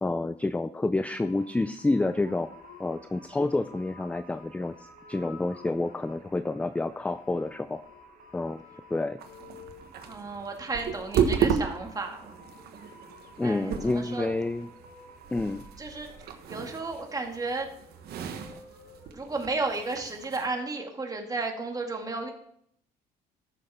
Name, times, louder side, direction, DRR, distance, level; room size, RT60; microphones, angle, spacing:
voice 1, 0.0-2.5 2.8-7.8 8.3-8.6 8.9-9.2 13.4-14.7 15.3-15.6, left 2 dB, 10° left, 12 dB, 0.4 m, -29 dB
sound 1, 1.1-16.5, right 1 dB, 55° right, 1.6 m, -55 dB
sound 2, 2.0-20.0, left 4 dB, 80° left, 3.8 m, -54 dB
sound 3, 9.2-20.5, right 7 dB, 70° right, 1.3 m, -34 dB
voice 2, 10.1-12.4 13.4-14.3 15.8-17.7 19.1-22.3, right 3 dB, 20° right, 2 dB, 2.2 m, -33 dB
14.5 x 6.5 x 4.3 m, 0.69 s
cardioid pair, 110°, 17 cm